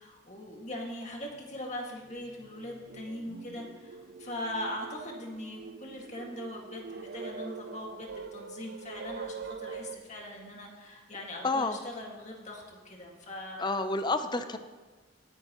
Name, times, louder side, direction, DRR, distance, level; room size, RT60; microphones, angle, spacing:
voice 1, 0.0-13.7, left 1 dB, 40° left, 0 dB, 2.0 m, -41 dB
sound 1, 1.3-1.4 1.9-10.0, right 5 dB, 60° right, 0.5 m, -44 dB
voice 2, 11.4-11.8 13.6-14.6, left 3 dB, 25° left, 9 dB, 0.6 m, -29 dB
17.5 x 10.0 x 3.0 m, 1.4 s
head